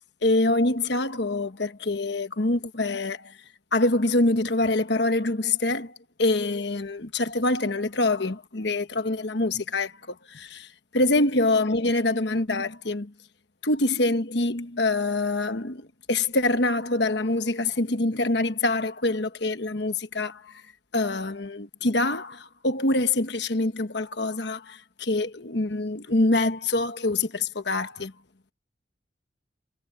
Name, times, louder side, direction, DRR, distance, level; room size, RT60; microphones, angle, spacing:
voice 1, 0.2-3.4 3.7-10.7 10.9-13.1 13.6-20.6 20.9-28.1, left 2 dB, 60° left, 1.3 m, -25 dB
head